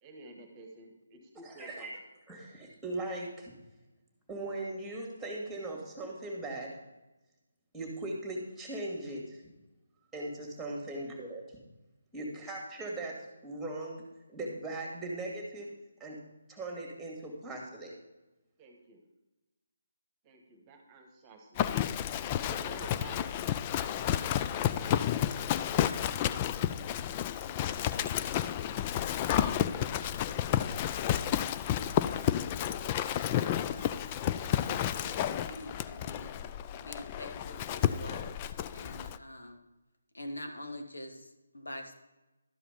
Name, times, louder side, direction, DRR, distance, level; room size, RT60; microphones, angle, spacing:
voice 1, 0.0-1.9 12.3-12.5 18.6-19.0 20.2-21.6 22.4-23.2 24.6-26.5 27.4-27.8, right 2 dB, 20° right, 4 dB, 1.4 m, -51 dB
voice 2, 1.4-1.9 2.3-3.5 4.3-6.8 7.7-9.4 10.1-11.4 12.1-14.0 14.3-15.7 16.0-16.2 16.5-17.9, right 2 dB, 5° right, -1 dB, 2.1 m, -39 dB
Livestock farm animals working animals, 21.6-39.2, left 10 dB, 25° left, 0.3 m, -31 dB
voice 3, 34.3-36.4 36.8-38.4 38.7-39.6 40.1-41.9, left 1 dB, 90° left, 5 dB, 1.4 m, -45 dB
12.5 x 5.0 x 5.1 m, 1.0 s
figure-of-eight pair, 155°, 0 cm